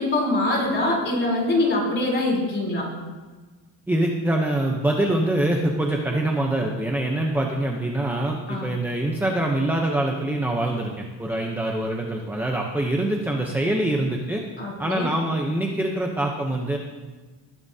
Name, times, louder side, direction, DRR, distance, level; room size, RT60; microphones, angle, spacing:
voice 1, 0.0-2.9 8.5-8.7 14.6-15.0, left 2 dB, 25° left, -3 dB, 3.6 m, -23 dB
voice 2, 3.9-14.4 14.8-16.8, right 1 dB, 5° right, 0 dB, 0.7 m, -24 dB
20.0 x 11.0 x 2.8 m, 1.4 s
cardioid pair, 175°, 45 cm